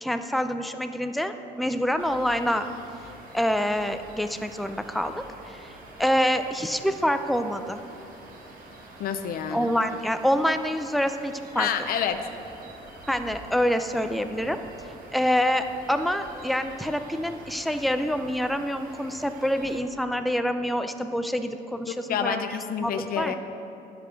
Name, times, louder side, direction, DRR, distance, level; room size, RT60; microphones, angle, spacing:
voice 1, 0.0-2.7 3.3-5.7 6.0-7.8 9.5-11.7 13.1-14.6 15.1-23.3, equal, ahead, 8 dB, 0.4 m, -26 dB
sound 1, 2.0-19.8, right 2 dB, 55° right, 1.4 m, -47 dB
voice 2, 9.0-9.7 11.6-12.3 21.9-23.3, left 8 dB, 60° left, 8 dB, 0.6 m, -28 dB
10.0 x 5.0 x 5.9 m, 2.9 s
cardioid pair, 110°, 17 cm